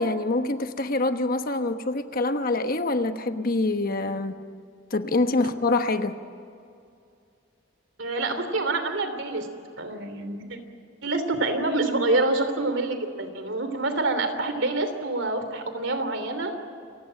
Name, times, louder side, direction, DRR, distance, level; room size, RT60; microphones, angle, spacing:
voice 1, 0.0-4.3 4.9-6.1, left 2 dB, 45° left, 8 dB, 1.1 m, -25 dB
voice 2, 8.0-9.5 9.8-10.6 11.0-16.5, right 2 dB, 70° right, 8 dB, 3.0 m, -26 dB
28.5 x 16.5 x 7.7 m, 2.5 s
head